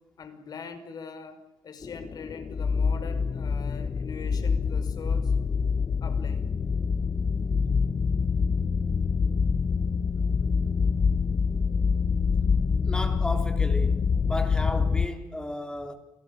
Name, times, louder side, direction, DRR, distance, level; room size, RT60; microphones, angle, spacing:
voice 1, 0.0-5.3 6.0-6.5, left 5 dB, 50° left, 5.6 m, -42 dB
sound 1, 1.8-15.1, left 5 dB, 35° left, 1.1 m, -26 dB
voice 2, 12.8-15.9, left 1 dB, 10° left, 3.7 m, -34 dB
28.5 x 17.5 x 9.0 m
cardioid pair, 90°, 8 cm